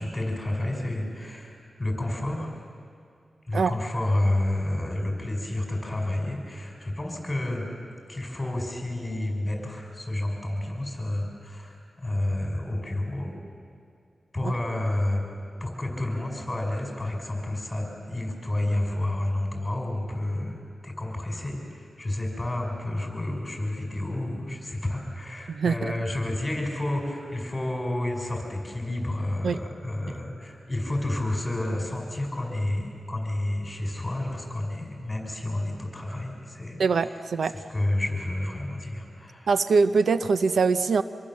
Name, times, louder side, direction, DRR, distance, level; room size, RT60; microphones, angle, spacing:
voice 1, 0.0-2.6 3.5-7.7 8.1-13.3 14.3-15.2 15.6-20.6 20.8-39.5, left 1 dB, 15° left, 1 dB, 5.6 m, -30 dB
voice 2, 25.5-25.9 29.4-29.6 36.8-37.6 39.5-41.0, right 4 dB, 75° right, 12 dB, 0.6 m, -23 dB
25.5 x 23.0 x 7.5 m, 2.3 s
wide cardioid pair, 100°, 0 cm